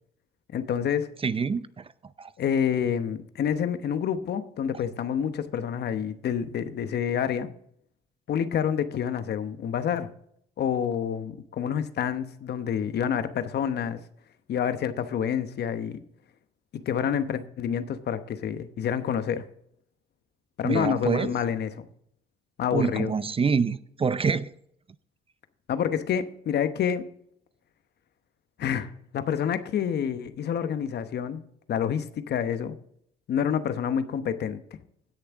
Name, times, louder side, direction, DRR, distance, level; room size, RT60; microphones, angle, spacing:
voice 1, 0.5-1.1 2.4-7.5 8.3-10.1 10.6-14.0 14.5-16.0 16.7-19.4 20.6-21.9 22.6-23.1 25.7-27.0 28.6-31.4 31.7-32.8 33.3-34.6, left 8 dB, 60° left, 1.0 m, -28 dB
voice 2, 1.2-1.9 2.2-2.3 20.6-21.3 22.7-24.5, right 5 dB, 30° right, 0.6 m, -26 dB
16.5 x 6.7 x 3.6 m
supercardioid pair, 65°, 19 cm